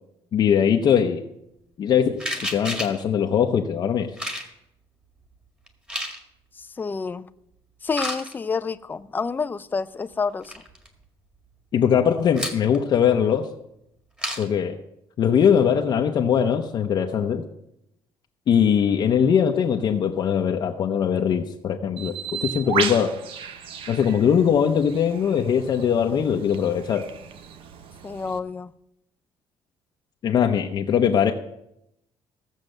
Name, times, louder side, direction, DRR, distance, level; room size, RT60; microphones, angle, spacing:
voice 1, 0.3-1.2 1.8-4.1 11.7-13.5 14.4-14.8 15.2-17.4 18.5-23.2 23.9-27.1 30.2-31.3, left 8 dB, 40° left, 0.8 m, -21 dB
sound 1, 2.2-3.0 4.2-4.5 5.7-6.2 7.9-8.3 10.1-10.2 10.4-10.9 12.4-12.8 14.2-14.5, equal, 10° right, 1.7 m, -30 dB
voice 2, 6.6-7.2 7.8-10.5 28.0-28.7, left 5 dB, 20° left, 0.4 m, -28 dB
Bird, 22.0-28.4, right 7 dB, 60° right, 1.0 m, -34 dB
16.0 x 7.4 x 6.6 m
cardioid pair, 160°, 10 cm